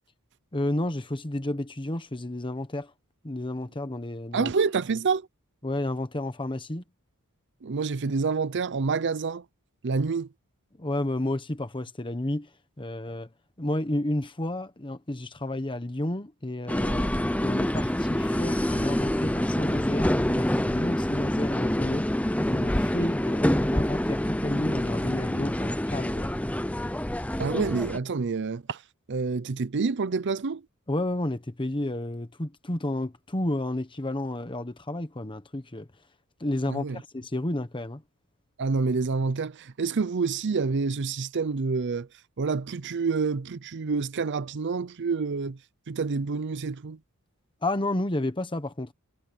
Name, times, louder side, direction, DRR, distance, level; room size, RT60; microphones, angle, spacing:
voice 1, 0.5-2.9 3.2-4.5 5.6-6.8 10.8-12.5 12.8-13.3 13.6-17.1 17.4-22.1 22.5-26.3 30.9-35.9 36.4-38.0 47.6-48.9, left 1 dB, 20° left, 1.2 m, -31 dB
voice 2, 4.3-5.3 7.6-9.4 9.8-10.3 27.4-28.8 29.1-30.6 36.7-37.0 38.6-42.1 42.4-45.6 45.9-47.0, right 4 dB, 55° right, 0.6 m, -27 dB
sound 1, 16.7-28.0, left 1 dB, 5° left, 0.8 m, -26 dB
head